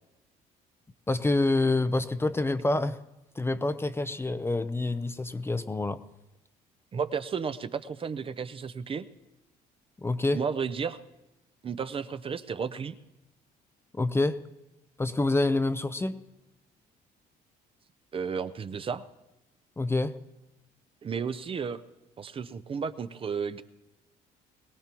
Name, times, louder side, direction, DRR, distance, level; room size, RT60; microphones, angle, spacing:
voice 1, 1.1-3.0 3.4-6.0 10.0-10.4 13.9-14.4 15.0-16.2 19.8-20.1, left 2 dB, 15° left, 11 dB, 0.5 m, -27 dB
voice 2, 6.9-9.1 10.3-11.0 11.6-13.0 18.1-19.0 21.0-21.8 22.2-23.6, right 6 dB, 35° right, 12 dB, 0.6 m, -33 dB
22.0 x 17.5 x 3.0 m, 0.95 s
cardioid pair, 110°, 17 cm